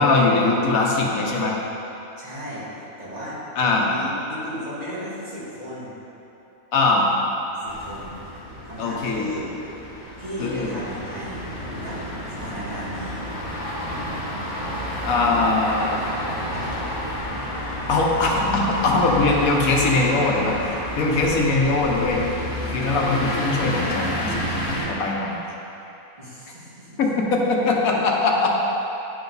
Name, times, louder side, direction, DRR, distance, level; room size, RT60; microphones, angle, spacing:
voice 1, 0.0-1.6 3.6-3.9 6.7-7.1 8.8-9.2 10.4-10.7 15.0-16.0 17.9-20.6 21.0-22.2 22.7-25.4 27.0-28.6, left 3 dB, 75° left, -1 dB, 1.2 m, -21 dB
voice 2, 2.2-3.5 3.8-6.0 7.4-8.4 8.6-9.5 10.2-11.5 11.8-13.2 26.2-27.0, equal, 30° right, -10 dB, 2.1 m, -35 dB
sound 1, 7.7-24.8, left 1 dB, 40° left, 1.4 m, -30 dB
10.0 x 4.9 x 4.0 m, 2.9 s
omnidirectional pair, 1.5 m